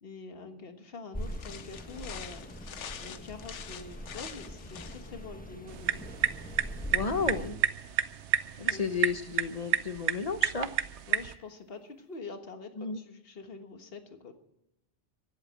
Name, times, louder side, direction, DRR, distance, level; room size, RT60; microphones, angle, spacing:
voice 1, 0.0-2.5 3.0-6.0 8.6-8.8 11.1-14.3, left 4 dB, 55° left, 6 dB, 1.6 m, -45 dB
sound 1, 1.1-7.5, equal, 5° left, 1.4 m, -42 dB
sound 2, 1.2-5.3, left 7 dB, 80° left, 1.2 m, -45 dB
sound 3, 5.7-11.3, right 10 dB, 75° right, 1.0 m, -31 dB
voice 2, 6.9-7.6 8.6-10.7 12.8-13.0, left 5 dB, 35° left, 9 dB, 1.0 m, -32 dB
15.5 x 8.2 x 8.8 m, 0.88 s
omnidirectional pair, 1.2 m